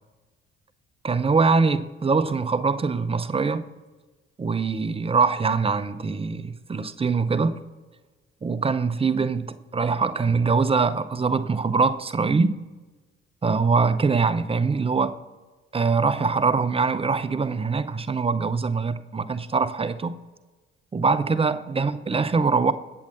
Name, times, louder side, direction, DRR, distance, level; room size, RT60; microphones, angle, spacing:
voice 1, 1.0-3.7 4.4-7.6 8.4-12.6 13.4-15.2 15.7-20.2 20.9-22.7, right 4 dB, 15° right, 0.6 m, -23 dB
21.0 x 7.7 x 2.6 m
figure-of-eight pair, 45°, 34 cm